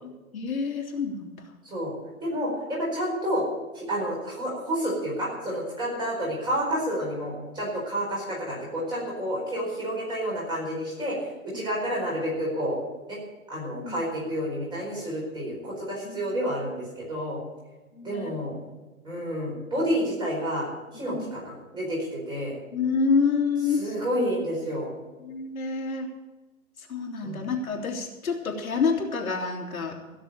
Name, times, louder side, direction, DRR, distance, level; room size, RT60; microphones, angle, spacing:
voice 1, 0.0-1.3 11.5-11.6 13.8-14.0 16.0-16.4 18.0-18.3 21.1-21.2 22.7-23.9 25.2-26.1 26.8-30.2, left 5 dB, 70° left, 0 dB, 2.9 m, -28 dB
voice 2, 2.2-3.4 3.7-12.8 13.1-13.2 13.5-17.4 18.0-18.5 19.0-20.7 20.9-22.5 23.8-24.9 27.2-27.5, equal, 10° right, -5 dB, 4.5 m, -29 dB
16.5 x 6.8 x 8.6 m, 1.2 s
hypercardioid pair, 155°, 44 cm